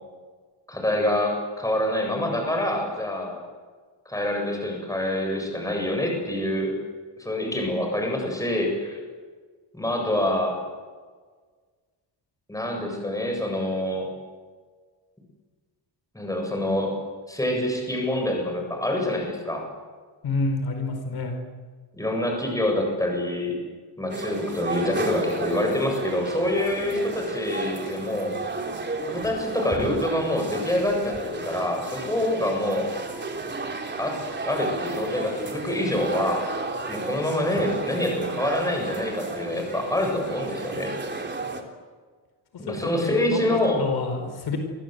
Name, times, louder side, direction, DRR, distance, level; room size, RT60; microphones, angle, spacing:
voice 1, 0.7-3.4 4.1-6.7 7.2-9.0 9.7-10.6 12.5-14.1 16.1-16.9 17.3-19.6 21.9-23.6 24.0-28.4 29.1-32.9 34.0-34.2 34.4-36.4 36.9-40.9 42.6-43.8, left 1 dB, 10° left, 2 dB, 7.8 m, -26 dB
voice 2, 20.2-21.4 42.7-42.8 43.0-43.4 43.8-44.6, left 3 dB, 60° left, 5 dB, 4.8 m, -28 dB
sound 1, 24.1-41.6, right 3 dB, 25° right, 3.5 m, -33 dB
29.5 x 24.5 x 8.2 m, 1.5 s
wide cardioid pair, 165°, 42 cm